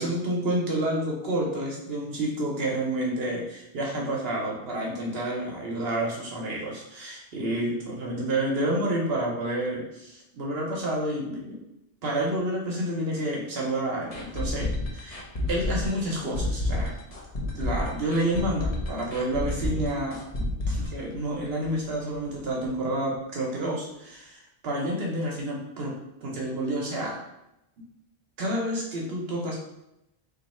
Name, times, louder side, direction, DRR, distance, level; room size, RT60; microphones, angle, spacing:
voice 1, 0.0-11.6 12.0-17.0 17.5-25.9 26.2-27.2 28.4-29.6, right 1 dB, 65° right, -2 dB, 0.9 m, -29 dB
sound 1, 14.1-21.9 22.1-22.2 22.6-22.7, left 2 dB, 40° left, 0.6 m, -30 dB
3.0 x 2.7 x 4.1 m, 0.89 s
omnidirectional pair, 1.1 m